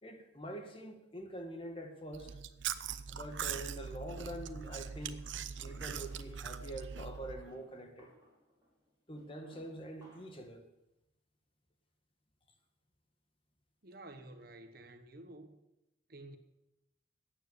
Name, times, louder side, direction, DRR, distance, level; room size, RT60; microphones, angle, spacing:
voice 1, 0.0-2.4 3.1-5.3 5.6-8.1 9.1-10.6, right 1 dB, 30° left, 1.5 m, -45 dB
Chewing mastication, 2.1-7.5, right 7 dB, 75° right, 0.7 m, -41 dB
sound 1, 5.3-6.4 7.0-10.5, equal, 20° right, 5.3 m, -62 dB
voice 2, 13.8-15.6 16.1-16.4, right 2 dB, 50° right, 1.2 m, -51 dB
13.5 x 9.2 x 6.9 m
head